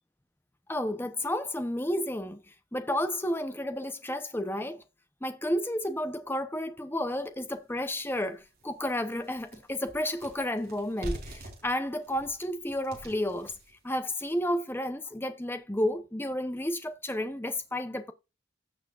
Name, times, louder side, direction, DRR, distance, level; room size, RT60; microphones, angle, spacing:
voice 1, 0.7-2.4 2.7-4.8 5.2-13.5 13.8-18.1, left 1 dB, 10° left, 0.8 m, -31 dB
sound 1, 8.0-8.1 8.5-14.5, equal, 50° right, 4.5 m, -44 dB
16.5 x 6.0 x 2.5 m
head